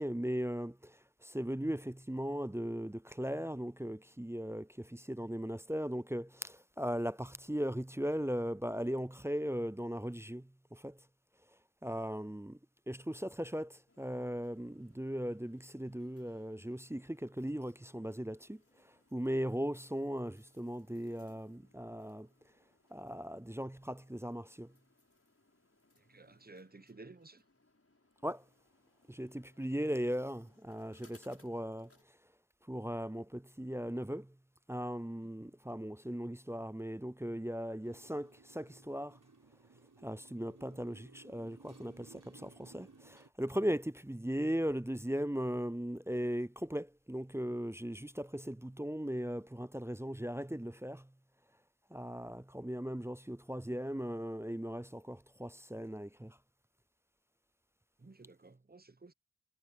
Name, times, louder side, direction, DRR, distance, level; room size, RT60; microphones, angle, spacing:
voice 1, 0.0-11.0 11.8-12.6 12.9-22.3 22.9-24.7 28.2-28.4 29.1-31.9 32.7-34.3 34.7-39.2 40.0-51.1 51.9-56.4, equal, 10° right, 0.4 m, -38 dB
sound 1, 13.9-32.0, left 2 dB, 45° left, 6.9 m, -70 dB
voice 2, 26.0-27.4 58.0-59.1, right 3 dB, 30° right, 0.9 m, -55 dB
Motorcycle, 37.8-43.3, right 4 dB, 70° right, 5.8 m, -59 dB
wide cardioid pair, 50°, 32 cm